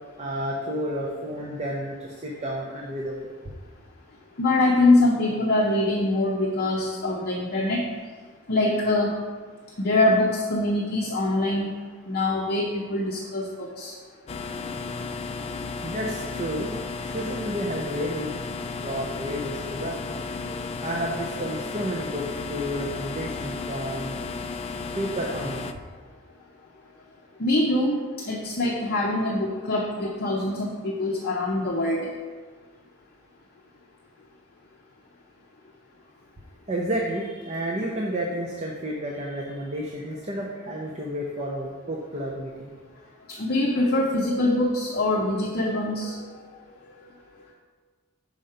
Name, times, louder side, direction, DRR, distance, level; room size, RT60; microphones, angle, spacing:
voice 1, 0.2-3.3 15.8-18.3 18.7-20.0 20.8-24.1 25.0-25.7 36.7-42.7, equal, 30° right, -1 dB, 0.7 m, -31 dB
voice 2, 4.4-7.8 8.5-9.1 9.8-11.7 12.1-14.0 20.4-20.7 27.4-28.0 28.2-32.1 43.3-46.4, left 2 dB, 45° left, -1 dB, 0.7 m, -24 dB
sound 1, 14.3-25.7, left 4 dB, 30° left, 0.3 m, -34 dB
6.4 x 5.1 x 5.6 m, 1.5 s
head